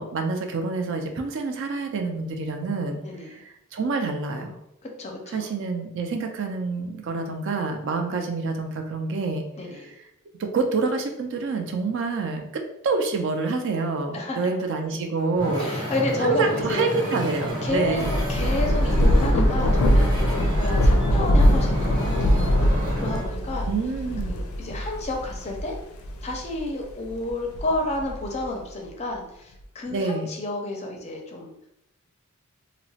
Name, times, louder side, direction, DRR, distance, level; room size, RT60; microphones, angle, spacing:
voice 1, 0.0-3.0 3.3-4.5 5.3-9.4 10.4-15.7 16.2-18.1 23.7-24.3 29.9-30.3, right 4 dB, 60° right, 5 dB, 0.4 m, -27 dB
voice 2, 3.0-3.4 5.0-5.5 9.6-9.9 14.1-14.4 15.6-16.9 17.6-18.0 18.3-22.7 23.0-23.7 24.3-25.7 26.2-31.5, left 2 dB, 30° left, 1 dB, 0.4 m, -31 dB
Wind / Ocean, 15.4-23.3, equal, 80° right, 1.1 m, -30 dB
Thunder / Rain, 17.7-26.6 27.1-28.5, equal, 85° left, 0.4 m, -22 dB
2.9 x 2.0 x 2.7 m, 0.81 s
head